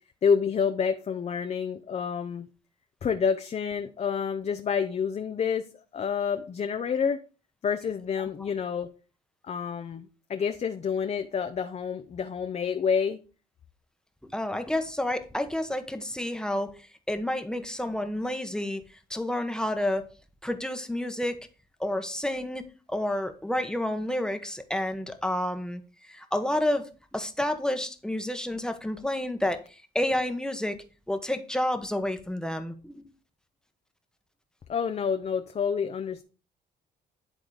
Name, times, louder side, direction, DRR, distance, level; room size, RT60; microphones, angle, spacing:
voice 1, 0.2-2.5 3.0-5.7 5.9-7.2 7.6-8.9 9.5-13.2 34.7-36.2, left 6 dB, 35° left, 7 dB, 0.7 m, -28 dB
voice 2, 14.2-16.7 17.1-18.8 19.1-20.0 20.4-21.4 21.8-25.8 26.1-29.6 29.9-30.8 31.1-33.0, left 1 dB, 5° left, 7 dB, 1.1 m, -30 dB
11.0 x 3.8 x 4.9 m, 0.36 s
cardioid pair, 100°, 18 cm